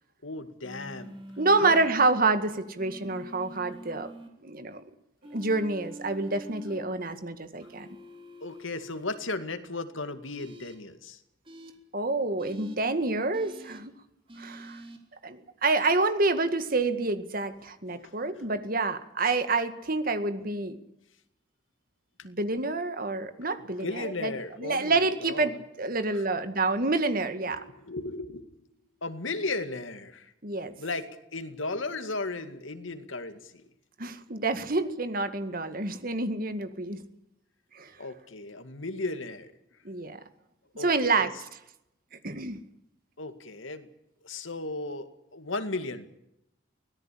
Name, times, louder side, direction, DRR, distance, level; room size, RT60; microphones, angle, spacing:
voice 1, 0.2-1.2 1.6-1.8 8.4-11.2 18.0-18.4 22.2-22.3 23.8-25.6 26.1-26.3 27.5-28.5 29.0-30.3 30.8-33.6 38.0-39.5 40.8-41.4 43.2-43.9 44.2-46.1, left 3 dB, 85° left, 9 dB, 2.2 m, -36 dB
sound 1, 0.6-1.9 2.8-4.3 5.2-6.8 7.6-9.0 10.4-10.8 11.4-11.7 12.4-12.8 13.3-13.8 14.3-15.0, right 1 dB, 25° right, 3.7 m, -46 dB
voice 2, 1.4-4.1 4.4-4.8 5.3-7.9 11.9-14.0 14.4-14.8 15.2-20.8 22.2-24.3 24.6-27.6 30.4-30.8 34.0-37.0 37.7-37.9 39.8-40.2 40.8-41.3 42.2-42.6, right 3 dB, 45° right, 10 dB, 2.0 m, -28 dB
24.0 x 17.5 x 8.5 m, 0.83 s
head